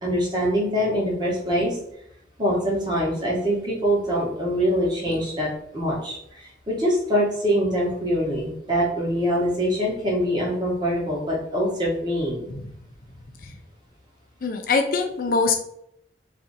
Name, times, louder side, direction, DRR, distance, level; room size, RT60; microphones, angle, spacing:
voice 1, 0.0-1.8 2.4-5.5 5.7-12.5, equal, 25° right, -4 dB, 1.0 m, -24 dB
voice 2, 14.4-15.6, left 4 dB, 50° left, 5 dB, 0.5 m, -23 dB
2.7 x 2.5 x 3.9 m, 0.74 s
head